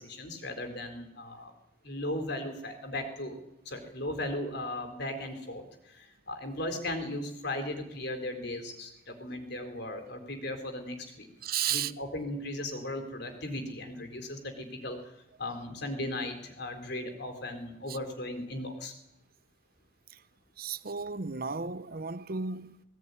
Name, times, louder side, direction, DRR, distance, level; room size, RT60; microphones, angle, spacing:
voice 1, 0.0-1.5 1.8-3.4 3.6-11.3 11.7-15.0 15.4-18.9, left 1 dB, 55° left, 4.3 m, -37 dB
voice 2, 11.4-11.9 17.9-18.0 20.6-22.8, right 6 dB, 45° right, 0.8 m, -33 dB
20.0 x 18.0 x 9.8 m
head